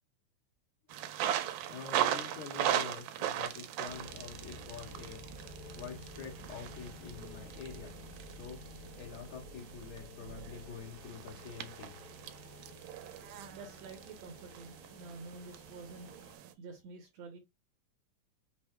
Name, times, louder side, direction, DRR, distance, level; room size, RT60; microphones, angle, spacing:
sound 1, 0.9-16.5, right 11 dB, 90° right, 2.1 m, -39 dB
voice 1, 1.3-5.2 5.7-8.0 8.3-12.0 12.7-12.8, left 7 dB, 70° left, 2.5 m, -47 dB
sound 2, 3.9-16.4, left 3 dB, 90° left, 2.1 m, -52 dB
voice 2, 13.5-16.2 16.6-17.4, right 4 dB, 70° right, 1.7 m, -49 dB
5.3 x 2.0 x 3.1 m
omnidirectional pair, 3.5 m